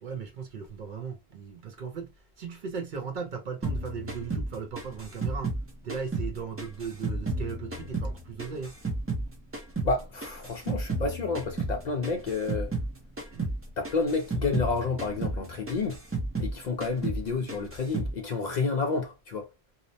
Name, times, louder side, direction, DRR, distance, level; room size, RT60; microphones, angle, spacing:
voice 1, 0.0-5.5 5.8-8.7 13.3-13.5, right 6 dB, 60° right, 0.6 m, -37 dB
sound 1, 3.6-6.3 6.6-9.3 9.5-12.9 13.2-13.6 13.8-16.6 16.8-17.2 17.5-18.1, right 2 dB, 20° right, 0.4 m, -32 dB
voice 2, 9.8-12.7 13.8-16.0 16.4-19.5, left 4 dB, 55° left, 0.5 m, -30 dB
2.7 x 2.0 x 2.6 m
omnidirectional pair, 1.1 m